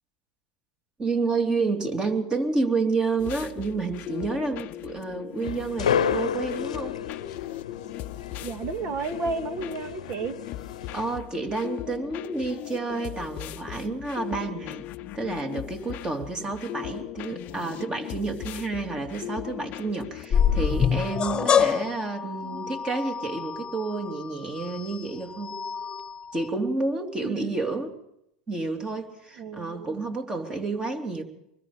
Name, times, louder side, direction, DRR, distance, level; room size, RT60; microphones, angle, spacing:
voice 1, 1.0-7.0 10.9-14.9 15.1-25.6 26.3-27.9 28.5-31.2, right 3 dB, 20° right, 4 dB, 3.1 m, -30 dB
sound 1, 3.2-21.7, left 14 dB, 50° left, 0.8 m, -38 dB
sound 2, 5.4-11.2, left 7 dB, 85° left, 1.0 m, -31 dB
voice 2, 8.4-10.4 21.3-21.7 27.2-27.6 29.4-30.1, right 5 dB, 45° right, 8 dB, 2.1 m, -33 dB
sound 3, 20.3-26.5, left 7 dB, 25° left, 1.4 m, -27 dB
25.0 x 21.0 x 5.1 m, 0.79 s
hypercardioid pair, 95°, 4 cm